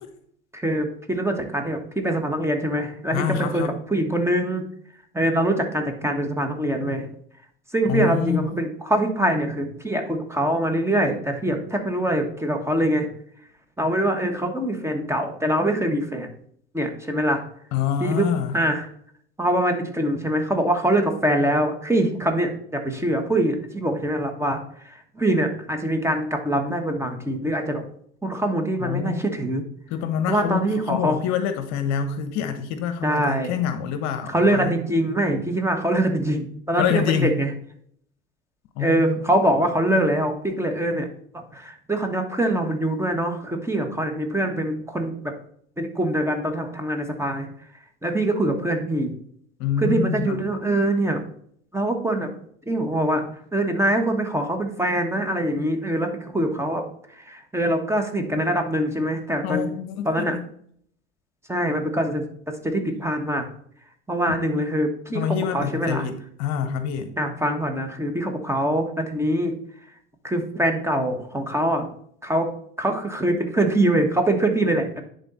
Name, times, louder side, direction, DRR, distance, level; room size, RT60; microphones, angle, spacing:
voice 1, 0.5-4.6 5.1-7.1 7.7-13.1 13.8-16.3 16.7-17.4 18.0-18.3 18.5-18.9 19.4-27.8 28.2-29.6 30.3-31.1 33.0-33.5 34.3-37.5 38.8-41.1 41.3-45.3 45.8-47.5 48.0-49.1 49.8-51.3 51.7-52.3 52.7-56.8 57.1-59.7 60.0-60.4 61.5-62.3 62.6-63.4 64.1-66.1 67.2-69.5 70.2-71.9 72.2-72.5 72.8-75.0, right 1 dB, 5° right, 5 dB, 1.4 m, -24 dB
voice 2, 3.1-3.7 7.9-8.4 17.7-18.6 28.8-29.3 29.9-34.8 36.8-37.4 38.8-39.2 49.6-50.4 59.4-60.5 64.3-64.4 65.1-67.1, left 8 dB, 50° left, 9 dB, 0.9 m, -26 dB
10.5 x 4.0 x 4.1 m, 0.63 s
hypercardioid pair, 75°, 35 cm